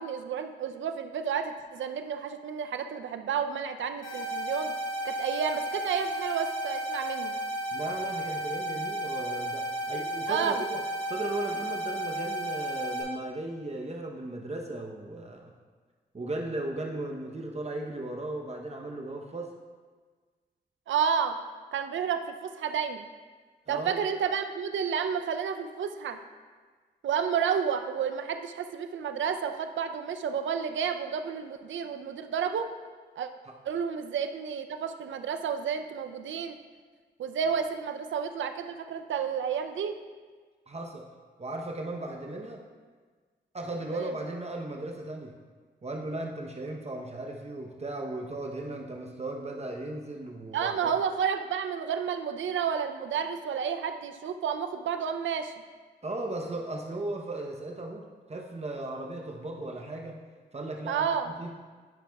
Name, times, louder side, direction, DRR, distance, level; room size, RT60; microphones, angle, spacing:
voice 1, 0.0-4.7 5.0-7.3 10.3-10.6 20.9-21.4 21.7-23.0 23.7-26.2 27.0-32.7 33.2-33.3 33.6-36.6 37.2-40.0 43.9-44.1 50.5-55.5 60.9-61.3, right 7 dB, 80° right, 8 dB, 0.5 m, -31 dB
sound 1, 4.0-13.0, right 1 dB, 85° left, 1.9 m, -33 dB
voice 2, 7.7-10.8 11.1-15.5 16.1-19.5 23.7-24.0 33.5-33.6 40.7-41.0 41.4-42.6 43.5-45.4 45.8-50.9 56.0-60.2 60.5-61.5, right 2 dB, 35° right, 1 dB, 0.8 m, -36 dB
10.5 x 5.9 x 2.3 m, 1.5 s
cardioid pair, 55°, 19 cm